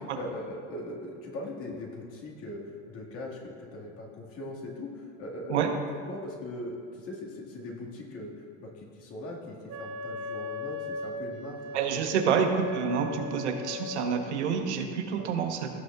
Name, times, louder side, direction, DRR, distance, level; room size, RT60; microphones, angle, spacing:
voice 1, 0.2-5.6 5.9-11.6 11.9-12.3 13.0-13.2 15.1-15.3, left 1 dB, 45° left, -2 dB, 1.9 m, -40 dB
Wind instrument woodwind instrument, 9.7-14.2, left 2 dB, 55° right, 1.1 m, -38 dB
voice 2, 11.7-12.5 12.7-15.7, right 7 dB, 90° right, 5 dB, 1.0 m, -28 dB
16.5 x 6.3 x 2.4 m, 2.2 s
hypercardioid pair, 100°, 33 cm